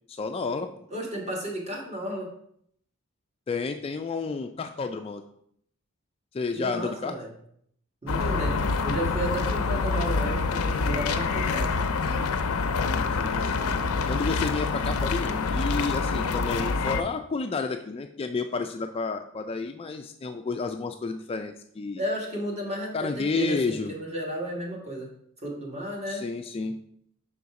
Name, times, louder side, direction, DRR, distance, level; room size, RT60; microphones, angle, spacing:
voice 1, 0.1-0.7 3.5-5.2 6.3-7.2 13.2-13.8 14.1-22.0 22.9-23.9 26.1-26.8, left 4 dB, 25° left, 6 dB, 0.3 m, -31 dB
voice 2, 0.9-2.3 6.5-7.3 8.0-11.7 22.0-25.1 25.4-26.2, right 1 dB, 30° right, -1 dB, 1.5 m, -33 dB
sound 1, 8.1-17.0, left 4 dB, 90° left, 0.5 m, -26 dB
5.8 x 4.0 x 4.7 m, 0.68 s
head